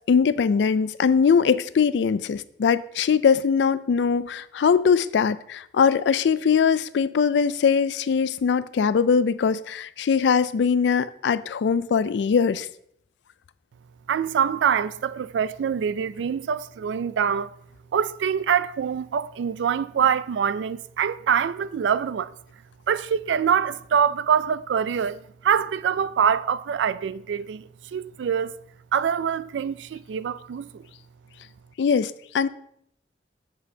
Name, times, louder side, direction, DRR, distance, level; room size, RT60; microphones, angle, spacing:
voice 1, 0.1-12.7 31.8-32.5, left 6 dB, 75° left, 0.3 m, -21 dB
voice 2, 14.1-17.5 17.9-22.3 22.9-28.6 28.9-30.8, right 7 dB, 80° right, 0.3 m, -24 dB
8.1 x 7.4 x 2.7 m
head